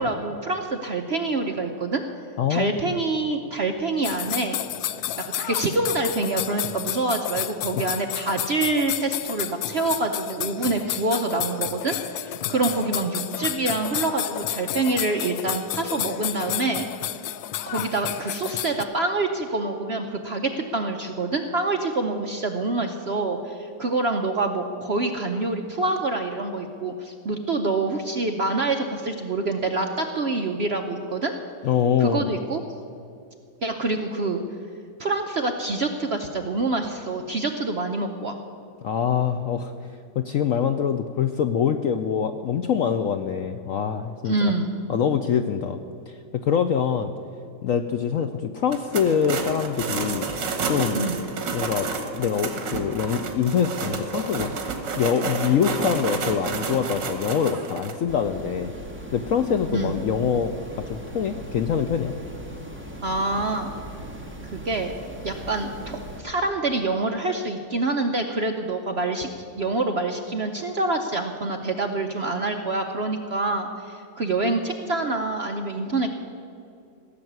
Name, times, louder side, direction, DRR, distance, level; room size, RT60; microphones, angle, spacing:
voice 1, 0.0-2.0 2.5-4.6 5.2-16.9 17.7-31.3 32.0-32.6 33.6-34.4 35.0-38.4 44.2-44.8 50.9-51.2 59.7-60.0 63.0-63.7 64.5-64.9 65.2-69.3 69.6-76.1, right 2 dB, 55° right, 4 dB, 0.7 m, -26 dB
voice 2, 2.4-3.0 7.7-7.9 31.6-32.4 38.8-39.7 40.1-44.5 44.9-45.8 46.1-47.1 47.6-50.3 50.7-51.0 51.5-54.5 54.9-58.7 59.1-60.5 60.9-62.1, left 7 dB, 70° left, 8 dB, 0.8 m, -24 dB
sound 1, 4.0-18.8, left 12 dB, 90° left, 1.3 m, -31 dB
sound 2, 48.7-57.9, right 4 dB, 75° right, 2.1 m, -30 dB
sound 3, 58.1-66.2, right 1 dB, 5° right, 1.4 m, -39 dB
17.0 x 7.0 x 9.3 m, 2.4 s
omnidirectional pair, 1.9 m